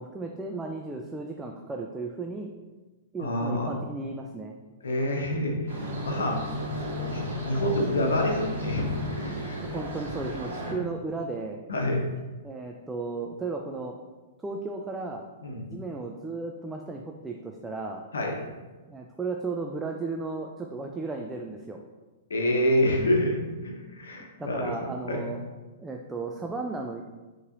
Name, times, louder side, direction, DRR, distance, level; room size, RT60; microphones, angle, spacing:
voice 1, 0.0-2.5 3.1-4.6 9.6-11.6 12.4-14.0 14.4-15.2 15.6-18.0 18.9-21.8 24.4-25.4 25.8-27.0, right 3 dB, 10° right, 1 dB, 0.3 m, -35 dB
voice 2, 3.2-3.7 4.8-6.5 7.1-9.6 10.6-10.7 11.7-12.1 15.4-15.7 18.1-18.4 22.3-24.7 25.1-25.2, left 1 dB, 85° left, 1 dB, 0.9 m, -27 dB
sound 1, 5.7-10.7, equal, 80° right, 1.3 m, -34 dB
5.3 x 3.1 x 2.6 m, 1.2 s
hypercardioid pair, 120°, 0 cm